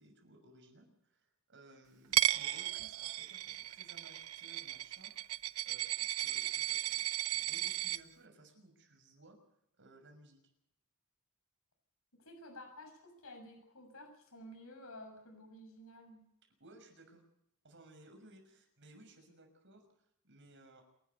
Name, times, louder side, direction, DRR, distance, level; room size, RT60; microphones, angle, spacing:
voice 1, 0.0-7.0 7.3-9.4 9.7-10.4 16.4-17.2 17.6-20.8, right 2 dB, 55° right, 5 dB, 6.2 m, -60 dB
Coin (dropping), 2.1-8.0, right 13 dB, 75° right, 0.7 m, -35 dB
voice 2, 12.1-16.3, left 1 dB, 70° left, 5 dB, 6.7 m, -52 dB
28.0 x 12.0 x 8.2 m, 0.79 s
head